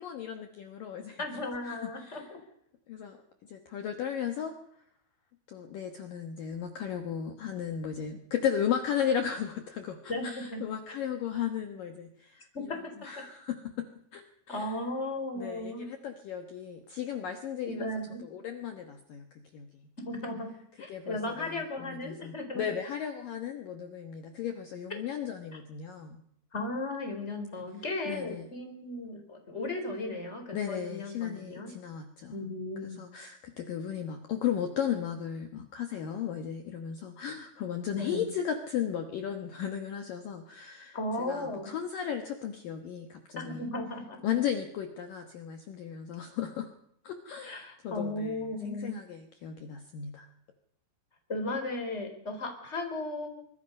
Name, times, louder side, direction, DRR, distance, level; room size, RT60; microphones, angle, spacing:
voice 1, 0.0-2.3 2.9-3.2 3.5-4.5 5.5-14.8 15.3-17.9 18.2-19.3 19.5-19.9 20.9-26.2 28.1-28.5 30.5-32.4 33.0-43.7 44.2-46.7 47.0-50.3, left 8 dB, 75° left, 5 dB, 2.0 m, -35 dB
voice 2, 1.2-2.4 10.1-10.6 12.5-13.2 14.5-15.9 17.7-18.2 20.1-20.5 20.8-22.6 26.5-31.7 32.3-33.0 37.9-38.3 40.9-41.7 43.4-44.2 47.4-49.0 51.3-53.4, left 2 dB, 15° left, 5 dB, 3.9 m, -36 dB
25.0 x 23.0 x 5.4 m, 0.73 s
omnidirectional pair, 5.9 m